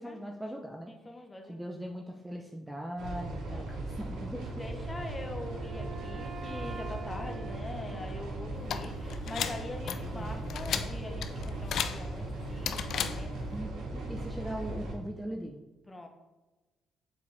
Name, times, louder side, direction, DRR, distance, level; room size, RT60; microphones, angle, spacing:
voice 1, 0.0-0.9 1.5-4.6 9.9-10.5 13.5-15.6, equal, 10° right, 1 dB, 0.6 m, -40 dB
voice 2, 0.9-1.6 3.5-3.7 4.6-13.5 15.9-16.1, left 2 dB, 20° left, 4 dB, 1.1 m, -43 dB
sound 1, 3.0-14.9, right 2 dB, 85° right, 1.4 m, -38 dB
Wind instrument woodwind instrument, 4.9-8.9, right 5 dB, 60° right, 0.6 m, -46 dB
sound 2, 8.6-13.6, left 8 dB, 70° left, 0.4 m, -36 dB
7.1 x 4.5 x 3.5 m, 1.1 s
cardioid pair, 90°, 0 cm